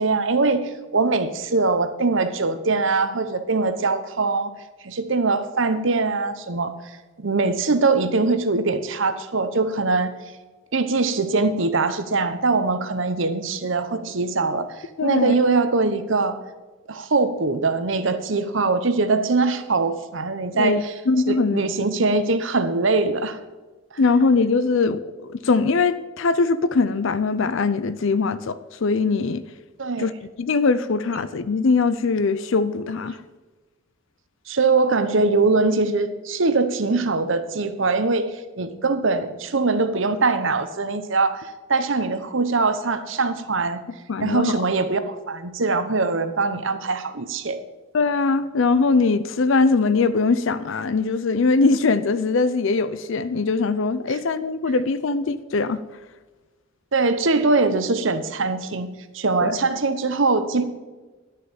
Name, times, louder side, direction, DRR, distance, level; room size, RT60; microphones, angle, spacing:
voice 1, 0.0-4.5 4.8-6.7 7.2-10.1 10.7-16.3 16.9-20.8 21.3-23.4 29.8-30.1 34.5-43.8 44.2-47.6 56.9-58.9 59.1-60.6, right 3 dB, 60° right, 0.9 m, -22 dB
voice 2, 15.0-15.4 20.6-21.6 24.0-25.0 25.3-29.4 30.0-30.1 30.4-33.2 44.1-44.6 47.9-55.8 59.4-59.5, left 4 dB, 60° left, 0.5 m, -21 dB
11.0 x 6.7 x 7.0 m
head